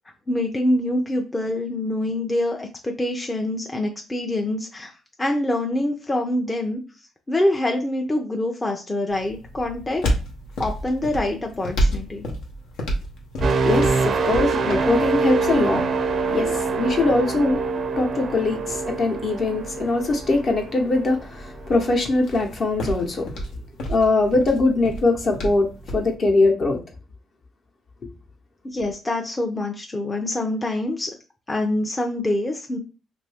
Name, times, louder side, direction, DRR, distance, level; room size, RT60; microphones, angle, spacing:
voice 1, 0.3-4.9 5.2-6.8 7.3-10.1 10.6-12.3 28.6-31.1 31.5-32.8, left 1 dB, 20° left, 0.5 m, -25 dB
sound 1, 9.1-26.1, equal, 80° left, 0.8 m, -32 dB
sound 2, 13.4-21.2 21.7-21.9, right 4 dB, 50° right, 0.4 m, -25 dB
voice 2, 13.6-15.9 16.3-17.6 18.0-23.3 23.9-26.8, left 2 dB, 50° left, 0.9 m, -21 dB
2.6 x 2.6 x 3.4 m
cardioid pair, 90°, 0 cm